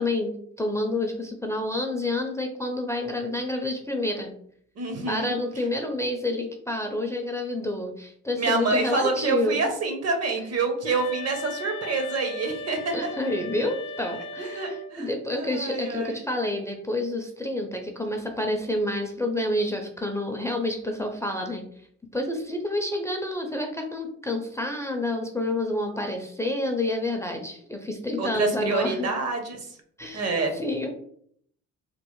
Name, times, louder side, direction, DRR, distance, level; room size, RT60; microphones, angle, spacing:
voice 1, 0.0-4.3 5.1-9.7 12.9-21.6 22.1-29.1 30.0-30.3 30.5-30.9, left 1 dB, 10° left, 2 dB, 0.4 m, -29 dB
voice 2, 4.8-5.4 8.4-13.1 14.4-15.1 15.4-16.2 28.2-29.7 30.1-30.5, right 3 dB, 55° right, 5 dB, 0.8 m, -27 dB
sound 1, 10.8-15.0, left 1 dB, 65° left, 0.5 m, -37 dB
3.1 x 2.0 x 3.0 m, 0.63 s
cardioid pair, 90°, 30 cm